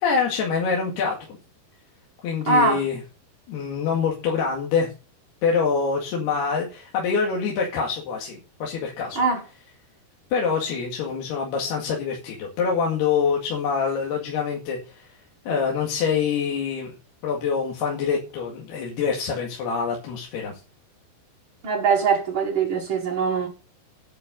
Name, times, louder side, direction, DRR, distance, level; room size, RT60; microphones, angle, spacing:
voice 1, 0.0-1.4 2.2-3.0 3.5-4.9 5.4-9.2 10.3-15.1 15.5-16.9 17.2-20.6, left 6 dB, 80° left, 4.1 m, -25 dB
voice 2, 2.5-2.8 9.1-9.4 21.6-23.5, right 4 dB, 50° right, 1.6 m, -22 dB
10.5 x 9.1 x 5.4 m
omnidirectional pair, 4.6 m